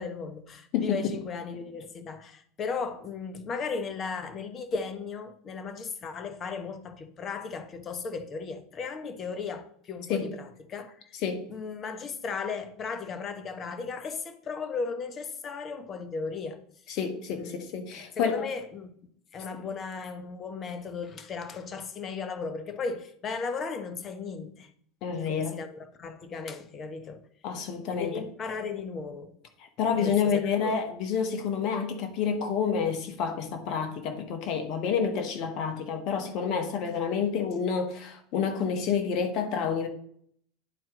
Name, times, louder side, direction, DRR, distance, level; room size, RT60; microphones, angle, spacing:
voice 1, 0.0-11.1 11.5-16.6 17.3-17.7 18.2-18.9 19.3-24.7 25.1-27.3 27.9-29.4 29.9-30.7, left 5 dB, 35° left, 1.0 m, -36 dB
voice 2, 17.0-18.5 25.0-25.6 27.4-28.1 29.8-39.9, left 6 dB, 55° left, 1.3 m, -29 dB
10.0 x 4.4 x 3.8 m
hypercardioid pair, 85°, 0 cm